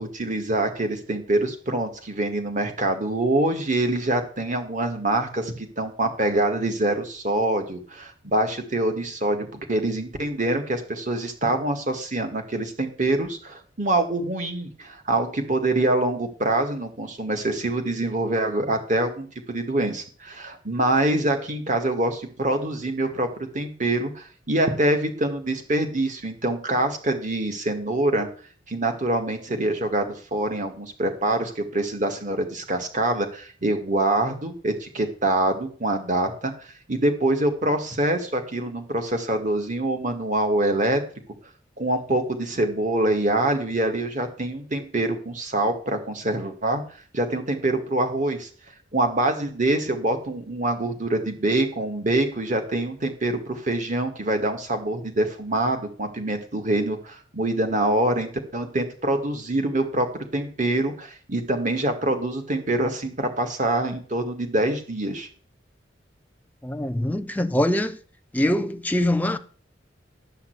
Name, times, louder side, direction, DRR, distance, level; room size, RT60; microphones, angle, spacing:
voice 1, 0.0-28.3 28.7-36.5 36.9-41.0 41.8-46.8 47.1-48.5 48.9-60.1 60.3-65.3, right 1 dB, 40° right, 2.1 m, -25 dB
voice 2, 66.6-68.0 68.3-69.4, left 1 dB, 10° left, 0.7 m, -23 dB
12.0 x 5.8 x 8.2 m
head